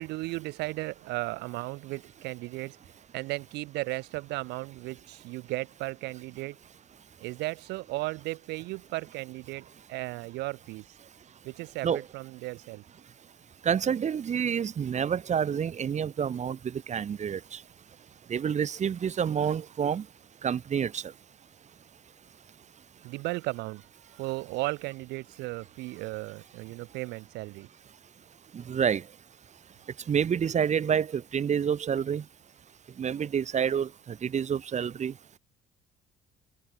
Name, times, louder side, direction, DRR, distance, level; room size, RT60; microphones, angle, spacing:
voice 1, 0.0-2.8 3.1-6.6 7.2-10.8 11.4-12.8 23.0-23.8 24.1-27.7, right 21 dB, 90° right, 2.2 m, -35 dB
voice 2, 13.6-17.6 18.3-20.0 20.4-21.0 28.5-29.0 30.1-32.2 33.0-35.1, right 8 dB, 45° right, 4.9 m, -28 dB
cardioid pair, 110°, 17 cm